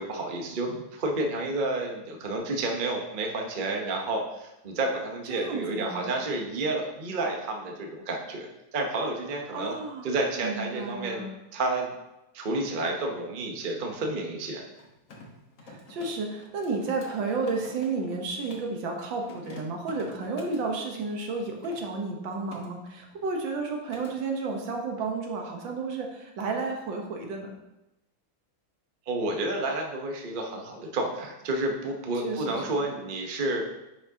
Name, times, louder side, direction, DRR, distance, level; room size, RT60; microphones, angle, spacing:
voice 1, 0.0-9.7 10.0-11.9 12.3-14.6 29.1-33.6, right 2 dB, 40° right, 2 dB, 0.7 m, -30 dB
voice 2, 5.3-6.1 9.5-10.1 10.4-11.3 15.6-27.5 32.2-32.9, right 3 dB, 70° right, 2 dB, 1.7 m, -32 dB
Mechanisms, 14.7-18.8 19.2-20.7 21.3-22.7 23.0-23.3 23.6-24.2, left 2 dB, 45° left, 1.3 m, -47 dB
10.0 x 5.8 x 2.8 m, 0.94 s
omnidirectional pair, 2.2 m